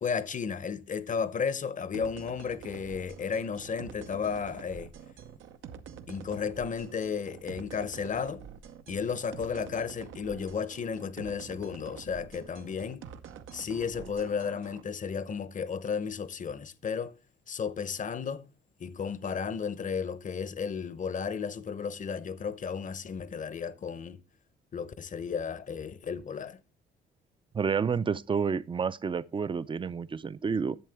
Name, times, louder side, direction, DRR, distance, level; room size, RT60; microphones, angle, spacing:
voice 1, 0.0-4.9 6.1-8.4 8.9-13.1 13.5-17.2 17.5-18.5 18.8-24.2 24.7-26.6, left 6 dB, 40° left, 0.8 m, -33 dB
sound 1, 1.9-14.8, right 8 dB, 80° right, 0.8 m, -47 dB
voice 2, 27.5-30.8, right 6 dB, 25° right, 0.4 m, -29 dB
11.0 x 7.3 x 3.4 m
cardioid pair, 90°, 20 cm